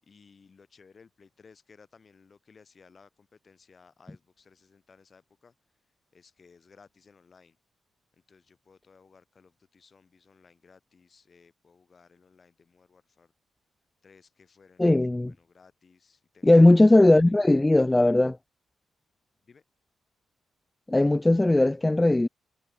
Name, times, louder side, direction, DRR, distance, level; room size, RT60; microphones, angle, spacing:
voice 1, 0.0-7.6 8.1-13.3 14.0-17.5 19.4-19.6, left 5 dB, 40° left, 6.6 m, -58 dB
voice 2, 14.8-15.3 16.4-18.4 20.9-22.3, left 2 dB, 15° left, 0.3 m, -18 dB
cardioid pair, 90°, 0 cm